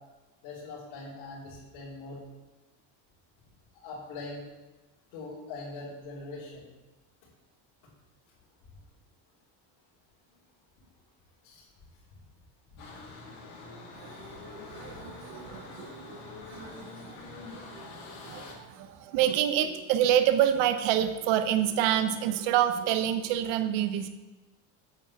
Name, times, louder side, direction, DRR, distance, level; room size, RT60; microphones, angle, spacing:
voice 1, 0.4-2.2 3.7-4.5 5.1-6.6 11.4-11.6, left 3 dB, 80° left, -10 dB, 3.8 m, -42 dB
sound 1, 12.8-18.5, left 3 dB, 55° left, 3.5 m, -45 dB
voice 2, 13.9-17.9 18.2-24.1, right 10 dB, 70° right, 9 dB, 0.9 m, -28 dB
9.0 x 5.7 x 7.5 m, 1.1 s
cardioid pair, 165°, 47 cm